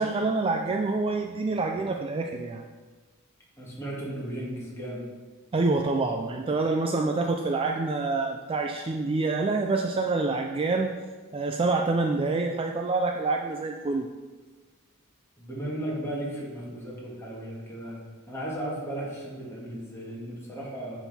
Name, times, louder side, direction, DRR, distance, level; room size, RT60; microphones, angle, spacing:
voice 1, 0.0-2.6 5.5-10.9 11.3-14.1, right 3 dB, 25° right, 3 dB, 0.3 m, -27 dB
voice 2, 3.6-5.0 15.4-18.0 18.3-21.0, right 1 dB, 10° left, -6 dB, 2.0 m, -35 dB
10.0 x 3.9 x 4.2 m, 1.4 s
head